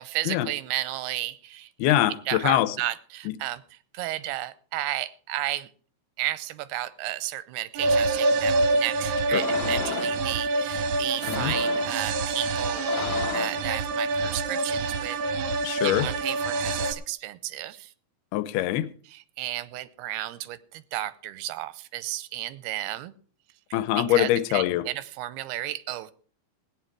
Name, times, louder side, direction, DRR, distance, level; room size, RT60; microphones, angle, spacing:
voice 1, 0.0-1.7 2.3-3.6 3.9-5.7 6.2-15.2 15.8-17.9 19.1-23.1 24.0-26.1, right 15 dB, 90° right, 15 dB, 2.8 m, -33 dB
voice 2, 1.8-2.8 3.3-3.4 9.3-9.5 11.3-11.5 15.6-16.1 18.3-18.9 23.7-24.9, left 13 dB, 85° left, 14 dB, 2.7 m, -24 dB
sound 1, 7.7-16.9, right 2 dB, 65° right, 2.0 m, -26 dB
sound 2, 9.3-10.2 11.1-12.0 12.6-13.7, left 9 dB, 65° left, 1.7 m, -35 dB
17.5 x 9.5 x 4.7 m, 0.43 s
omnidirectional pair, 4.5 m